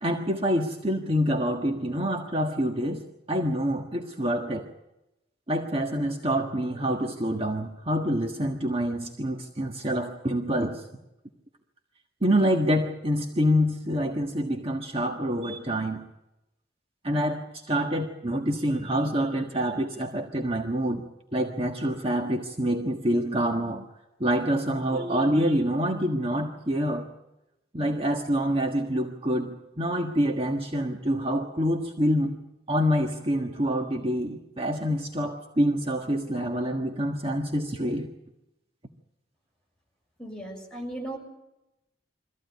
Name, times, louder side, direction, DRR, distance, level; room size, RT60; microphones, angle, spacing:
voice 1, 0.0-4.6 5.5-10.8 12.2-16.0 17.0-21.0 21.3-23.8 24.2-27.1 27.7-32.4 32.7-38.1, equal, 30° right, 2 dB, 1.5 m, -26 dB
voice 2, 40.2-41.2, right 1 dB, 5° left, -1 dB, 6.3 m, -36 dB
23.5 x 15.5 x 9.4 m, 0.94 s
head